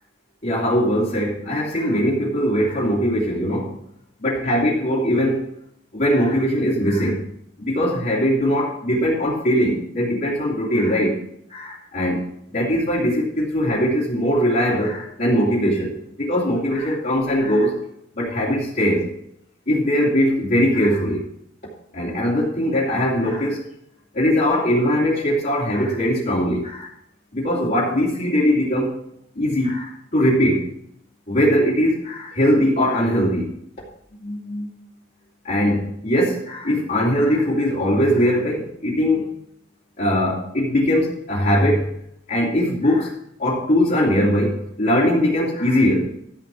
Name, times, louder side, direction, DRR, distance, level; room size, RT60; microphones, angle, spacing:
voice 1, 0.4-3.8 4.2-5.5 5.9-7.2 7.6-11.2 11.5-17.8 18.1-19.1 19.7-21.2 21.9-23.7 24.1-26.9 27.3-29.0 29.3-30.7 31.3-33.5 34.2-34.7 35.4-39.3 40.0-41.9 42.3-46.1, equal, 50° left, -8 dB, 3.1 m, -21 dB
13.5 x 5.3 x 6.2 m, 0.73 s
head